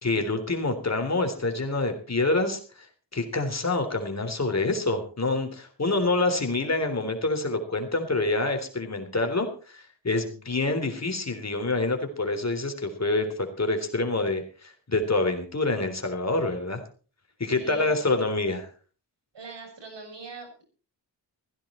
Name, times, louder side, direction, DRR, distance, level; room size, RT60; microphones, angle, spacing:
voice 1, 0.0-2.9 3.1-16.8 17.4-18.7, left 2 dB, 40° left, 5 dB, 3.6 m, -27 dB
voice 2, 17.5-18.0 19.3-20.6, right 3 dB, 80° right, 3 dB, 7.2 m, -42 dB
16.0 x 15.5 x 4.4 m, 0.39 s
wide cardioid pair, 85°, 42 cm